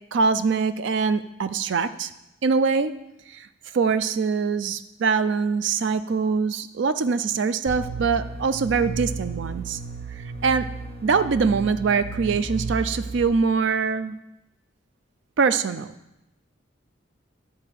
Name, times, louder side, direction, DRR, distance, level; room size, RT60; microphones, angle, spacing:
voice 1, 0.1-2.1 2.4-2.9 3.3-3.5 3.7-9.8 10.2-10.7 11.0-14.2 15.4-15.9, right 5 dB, 70° right, 13 dB, 0.4 m, -23 dB
sound 1, 7.7-13.2, right 3 dB, 45° right, 0.9 m, -33 dB
10.5 x 4.4 x 7.5 m, 0.90 s
head